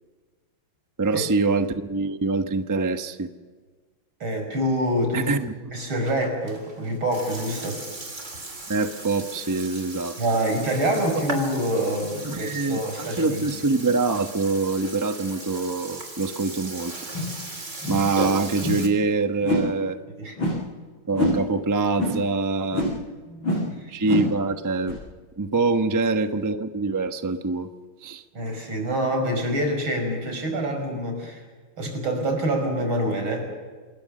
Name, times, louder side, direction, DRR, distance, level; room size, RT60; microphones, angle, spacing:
voice 1, 1.0-3.3 5.1-5.5 8.7-10.2 12.2-16.9 17.9-20.0 21.1-22.9 23.9-25.0 25.4-27.7 28.0-28.2, right 3 dB, 15° right, 8 dB, 0.6 m, -24 dB
voice 2, 4.2-5.4 5.7-7.8 10.2-13.4 20.2-20.4 23.3-23.9 28.3-31.4 31.8-33.5, right 1 dB, 85° right, 4 dB, 6.3 m, -26 dB
Burping eructation, 5.7-18.9, right 2 dB, 35° right, 3.7 m, -37 dB
sound 1, 17.1-17.4 17.8-18.1 18.6-18.9 19.4-19.7 20.4-20.6 21.1-21.4 22.0-22.2 22.7-23.0 23.4-23.7 24.0-24.4 24.9-25.0, left 1 dB, 75° left, 7.1 m, -25 dB
27.5 x 21.0 x 6.7 m, 1.5 s
omnidirectional pair, 2.2 m